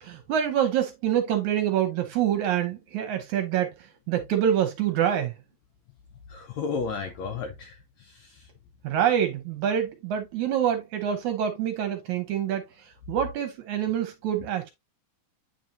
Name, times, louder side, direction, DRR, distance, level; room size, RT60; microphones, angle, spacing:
voice 1, 0.0-5.3 8.8-12.7 13.1-14.7, right 9 dB, 75° right, 1.9 m, -26 dB
voice 2, 6.3-8.5, left 5 dB, 80° left, 1.6 m, -34 dB
9.0 x 4.4 x 2.6 m
omnidirectional pair, 4.1 m